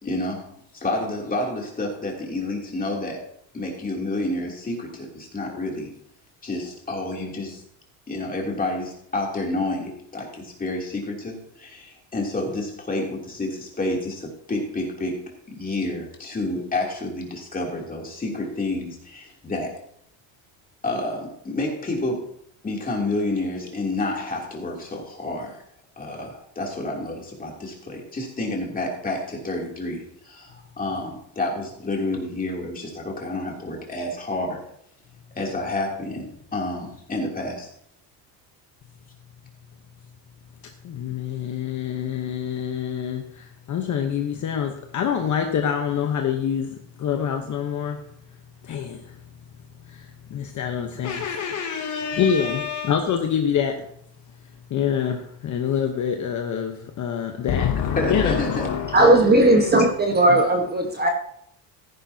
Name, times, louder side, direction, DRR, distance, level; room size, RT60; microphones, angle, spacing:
voice 1, 0.0-0.4 0.7-3.2 3.5-5.9 6.4-7.6 8.1-15.2 15.5-19.7 20.8-22.3 22.6-25.6 26.0-34.6 35.3-37.7 58.0-58.7, left 2 dB, 20° left, -1 dB, 3.0 m, -29 dB
voice 2, 40.8-48.0 48.6-49.2 49.8-53.9 54.7-59.5 60.3-60.5, left 8 dB, 40° left, 4 dB, 1.0 m, -26 dB
voice 3, 58.9-61.1, right 1 dB, 20° right, 3 dB, 1.3 m, -17 dB
14.5 x 10.5 x 2.8 m, 0.70 s
cardioid pair, 130°, 46 cm